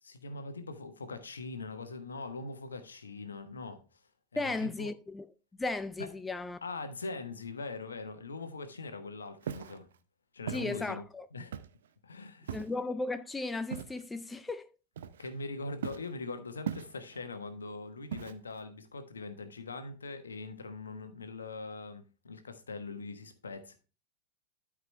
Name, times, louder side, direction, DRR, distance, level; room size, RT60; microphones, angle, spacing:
voice 1, 0.0-4.0 4.3-4.9 6.6-9.9 10.3-11.0 11.3-11.5 12.0-12.6 15.2-23.8, left 3 dB, 70° left, 1.2 m, -42 dB
voice 2, 4.3-5.3 5.6-6.6 10.5-11.3 12.5-14.7, left 3 dB, 10° left, 0.4 m, -35 dB
Walk footsteps, 9.4-9.8 10.5-10.7 11.5-11.9 12.5-12.8 13.7-14.0 15.0-15.4 15.8-16.1 16.7-17.2 18.1-18.6, right 9 dB, 60° right, 0.6 m, -39 dB
12.5 x 4.9 x 3.2 m
figure-of-eight pair, 90°, 0 cm